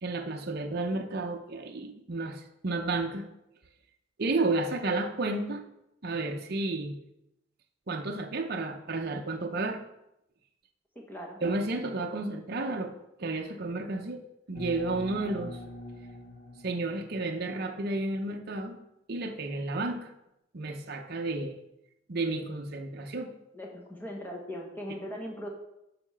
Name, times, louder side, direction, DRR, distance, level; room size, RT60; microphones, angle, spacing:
voice 1, 0.0-3.3 4.2-5.6 6.0-7.0 7.9-9.8 11.4-12.9 13.2-14.2 14.5-15.6 16.6-18.8 19.1-20.1 20.5-21.6 22.1-23.3, right 2 dB, 50° right, 3 dB, 0.7 m, -32 dB
voice 2, 10.9-11.4 23.5-25.5, equal, 10° left, -1 dB, 1.2 m, -39 dB
sound 1, 14.5-18.0, left 1 dB, 50° left, 0.9 m, -45 dB
6.9 x 4.8 x 5.6 m, 0.86 s
head